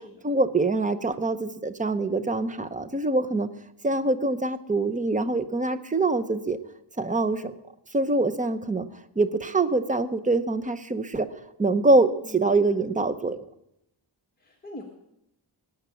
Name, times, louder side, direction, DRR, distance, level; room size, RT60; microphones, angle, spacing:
voice 1, 0.2-3.5 3.8-6.6 7.0-7.5 7.9-8.9 9.2-11.3 11.6-13.4, right 2 dB, 15° right, 9 dB, 0.7 m, -24 dB
voice 2, 12.2-12.8 14.4-14.8, equal, 20° left, -1 dB, 1.5 m, -44 dB
19.0 x 9.0 x 7.0 m, 0.82 s
wide cardioid pair, 155°, 49 cm